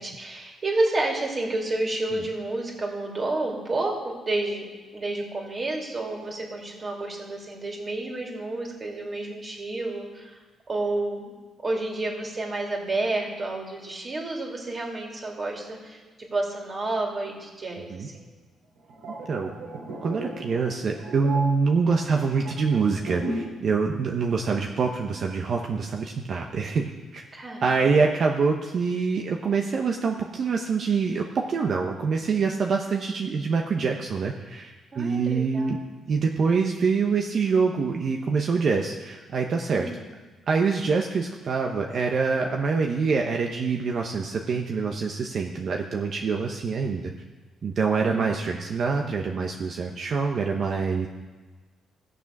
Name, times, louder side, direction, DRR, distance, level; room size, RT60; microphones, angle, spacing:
voice 1, 0.0-4.7 4.9-10.4 10.7-11.3 11.6-18.3 27.3-27.9 34.9-35.7 39.7-39.9 48.0-48.2, right 2 dB, 35° right, -1 dB, 2.8 m, -30 dB
sound 1, 18.8-23.7 23.9-24.2, right 1 dB, 90° right, 2.5 m, -35 dB
voice 2, 20.0-27.2 27.6-35.8 36.1-39.9 40.5-47.1 47.6-51.1, right 5 dB, 55° right, 2 dB, 0.9 m, -25 dB
15.0 x 6.9 x 6.0 m, 1.3 s
cardioid pair, 90°, 0 cm